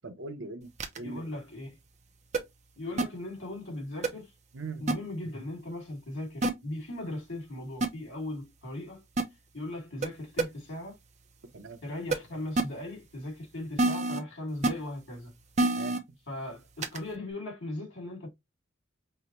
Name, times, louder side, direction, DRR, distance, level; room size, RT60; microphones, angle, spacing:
voice 1, 0.0-1.2 4.5-4.8 11.5-11.8 15.7-16.2, right 3 dB, 70° right, 0.8 m, -41 dB
sound 1, 0.8-1.0 2.3-2.4 3.0-3.1 4.0-4.1 4.9-5.0 6.4-6.5 7.8-7.9 9.2-9.3 10.0-10.1 10.4-10.5 12.1-12.2 12.6-12.7 13.8-14.2 14.6-14.7 15.6-16.0 16.8-17.0, right 2 dB, 35° right, 0.6 m, -25 dB
voice 2, 1.0-1.7 2.8-4.3 4.8-9.1 9.5-11.0 11.8-15.3 16.3-18.3, left 1 dB, 70° left, 2.4 m, -38 dB
5.5 x 2.2 x 3.0 m
head